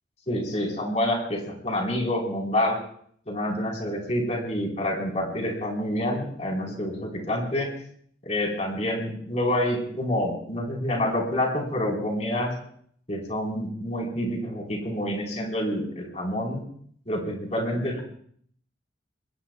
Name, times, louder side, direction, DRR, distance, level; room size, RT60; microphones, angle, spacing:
voice 1, 0.3-2.8 3.3-7.7 8.2-12.5 13.1-16.6 17.1-18.0, left 1 dB, 40° left, 0 dB, 4.3 m, -27 dB
26.5 x 21.0 x 2.4 m, 0.62 s
head